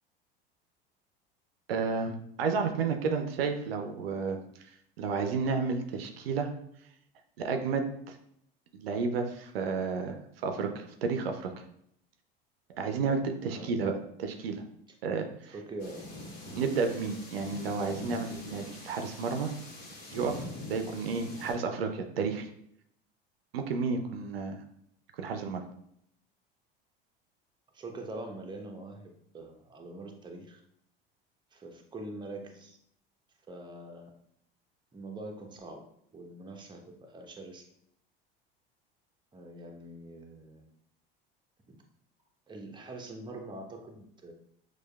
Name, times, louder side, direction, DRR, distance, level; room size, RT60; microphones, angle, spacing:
voice 1, 1.7-4.7 5.0-6.5 7.4-8.2 8.7-11.5 12.8-13.9 14.2-14.6 15.0-15.5 16.6-19.5 20.1-22.5 23.5-24.6 25.2-25.6, right 5 dB, 80° right, 5 dB, 0.5 m, -31 dB
voice 2, 13.5-13.8 15.5-16.2 27.7-30.6 31.5-32.8 33.5-34.1 34.9-35.8 36.1-37.6 39.3-40.7 41.7-41.8 42.5-44.3, right 2 dB, 15° right, 2 dB, 0.7 m, -44 dB
Heavy Thunderstorm, 15.8-21.5, left 1 dB, 55° left, 1.3 m, -44 dB
6.1 x 2.4 x 2.3 m, 0.71 s
hypercardioid pair, 70°, 29 cm